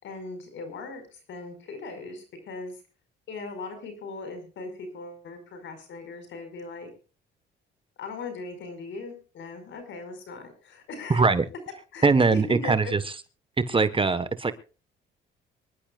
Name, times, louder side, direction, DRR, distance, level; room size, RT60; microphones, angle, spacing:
voice 1, 0.0-2.8 3.3-6.9 8.0-11.2 11.9-12.9, left 3 dB, 70° left, 7 dB, 5.4 m, -39 dB
voice 2, 11.1-11.4 12.0-13.0 13.6-14.5, right 4 dB, 25° right, 12 dB, 1.3 m, -21 dB
24.5 x 11.5 x 2.4 m, 0.36 s
cardioid pair, 90°, 20 cm